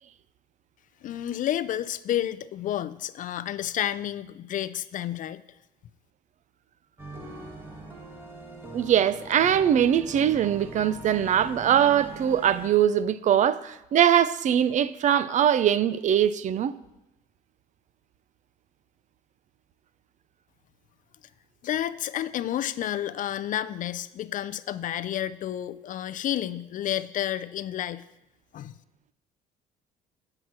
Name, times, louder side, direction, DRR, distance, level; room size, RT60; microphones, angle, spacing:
voice 1, 1.0-5.4 21.6-28.0 28.5-28.7, left 11 dB, 50° left, 0.4 m, -30 dB
sound 1, 7.0-12.7, right 1 dB, 15° right, 1.4 m, -42 dB
voice 2, 8.7-16.7, right 9 dB, 45° right, 0.4 m, -22 dB
7.8 x 5.8 x 6.0 m
cardioid pair, 110°, 17 cm